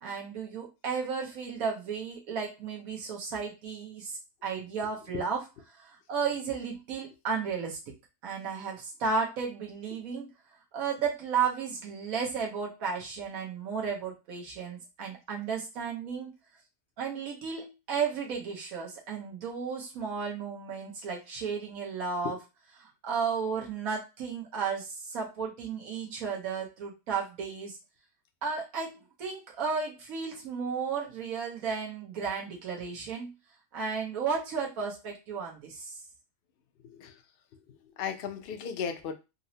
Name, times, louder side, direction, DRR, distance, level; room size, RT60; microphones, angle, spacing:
voice 1, 0.0-5.4 5.8-7.8 8.2-10.3 10.7-16.3 17.0-22.4 23.0-27.8 28.4-33.3 33.7-35.9, right 5 dB, 90° right, 1.3 m, -33 dB
voice 2, 36.8-37.2 37.7-39.1, left 7 dB, 60° left, 0.6 m, -36 dB
3.9 x 2.0 x 2.6 m
omnidirectional pair, 1.4 m